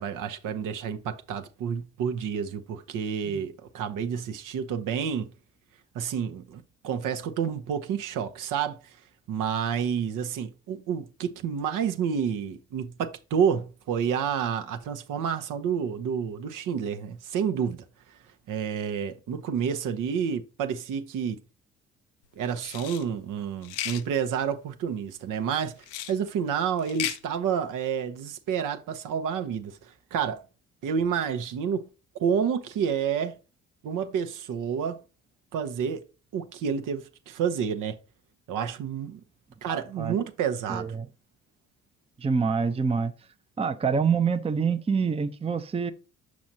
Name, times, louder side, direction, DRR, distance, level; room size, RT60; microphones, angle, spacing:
voice 1, 0.0-5.3 5.9-9.0 9.3-18.2 18.5-21.4 22.4-30.4 30.8-31.9 32.2-33.4 33.8-35.0 35.5-36.0 36.3-38.0 38.5-39.2 39.6-40.9, right 7 dB, 60° right, 0.9 m, -29 dB
sound 1, 22.6-23.0 23.6-24.0 25.8-26.1 26.8-27.2, left 12 dB, 80° left, 0.6 m, -34 dB
voice 2, 39.7-40.2 40.7-41.1 42.2-43.1 43.6-45.9, right 5 dB, 15° right, 0.6 m, -26 dB
6.2 x 6.1 x 2.7 m
hypercardioid pair, 50°, 35 cm